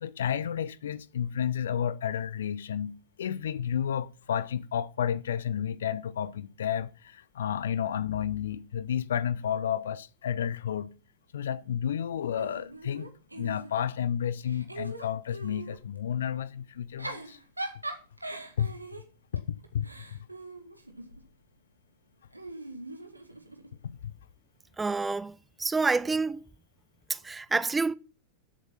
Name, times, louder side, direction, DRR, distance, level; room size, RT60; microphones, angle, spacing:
voice 1, 0.0-10.9 11.3-17.4 18.6-18.7 19.3-20.2 23.8-24.1, left 9 dB, 65° left, 0.8 m, -31 dB
Giggle / Chuckle chortle, 12.4-14.0 14.4-15.8 16.8-21.3 22.3-23.7, right 2 dB, 85° right, 1.9 m, -41 dB
voice 2, 24.8-26.4 27.1-27.9, right 4 dB, 10° right, 0.6 m, -28 dB
14.0 x 8.1 x 5.6 m
figure-of-eight pair, 90°, 0 cm